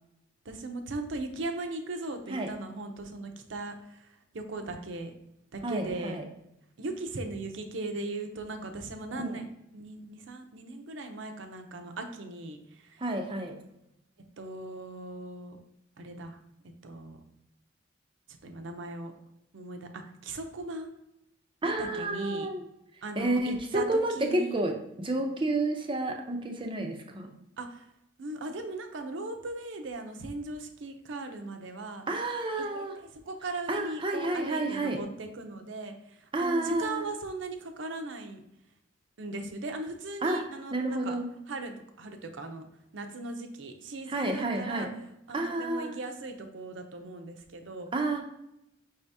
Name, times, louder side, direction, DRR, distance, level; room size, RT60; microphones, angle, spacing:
voice 1, 0.4-5.1 5.5-6.2 6.8-9.5 9.7-13.0 14.4-15.6 16.0-16.4 16.8-17.2 18.4-19.1 19.5-20.9 21.6-22.5 23.0-24.6 27.6-27.9 28.2-32.0 32.6-32.9 33.1-38.4 39.2-41.1 41.5-42.7 42.9-44.9 45.3-47.9, right 2 dB, 70° right, 6 dB, 0.6 m, -38 dB
voice 2, 5.6-6.2 9.1-9.4 13.0-13.6 21.6-22.6 23.2-27.3 32.1-33.0 33.7-35.0 36.3-37.0 40.2-40.4 40.7-41.3 44.1-44.9 45.3-45.9 47.9-48.2, right 2 dB, 25° right, 3 dB, 0.5 m, -30 dB
5.5 x 2.8 x 3.4 m, 0.83 s
head